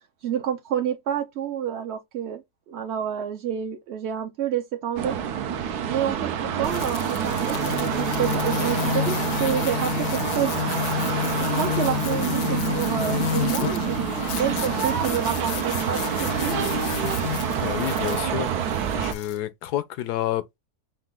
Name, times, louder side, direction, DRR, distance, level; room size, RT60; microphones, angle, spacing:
voice 1, 0.2-5.2 5.9-10.6 11.4-16.6, right 9 dB, 60° right, 0.7 m, -29 dB
sound 1, 5.0-19.1, right 8 dB, 75° right, 1.2 m, -27 dB
sound 2, 6.6-19.4, left 10 dB, 70° left, 0.9 m, -30 dB
voice 2, 17.6-18.5 18.9-20.6, left 12 dB, 85° left, 1.2 m, -29 dB
5.1 x 2.6 x 3.6 m
omnidirectional pair, 1.7 m